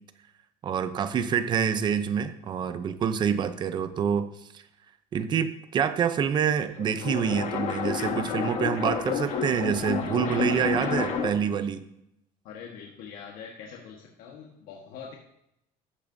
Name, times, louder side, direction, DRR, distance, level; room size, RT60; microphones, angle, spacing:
voice 1, 0.6-4.3 4.5-4.6 5.1-11.8, right 7 dB, 30° right, 10 dB, 0.7 m, -27 dB
sound 1, 6.6-11.5, left 6 dB, 50° left, 1.5 m, -30 dB
voice 2, 12.4-15.2, left 6 dB, 70° left, -1 dB, 1.5 m, -43 dB
13.0 x 8.5 x 2.7 m, 0.80 s
cardioid pair, 165°, 15 cm